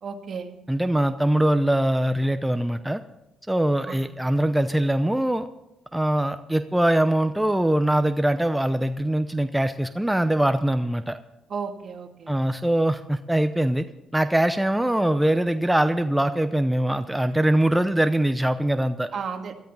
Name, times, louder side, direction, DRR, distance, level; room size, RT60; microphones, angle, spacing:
voice 1, 0.0-0.5 3.8-4.1 11.5-12.3 19.1-19.7, right 6 dB, 55° right, 5 dB, 1.8 m, -34 dB
voice 2, 0.7-3.0 3.5-5.5 5.9-11.2 12.3-13.9 14.1-19.1, right 1 dB, 5° right, 9 dB, 0.6 m, -22 dB
19.0 x 13.0 x 4.0 m, 0.91 s
cardioid pair, 90°, 0 cm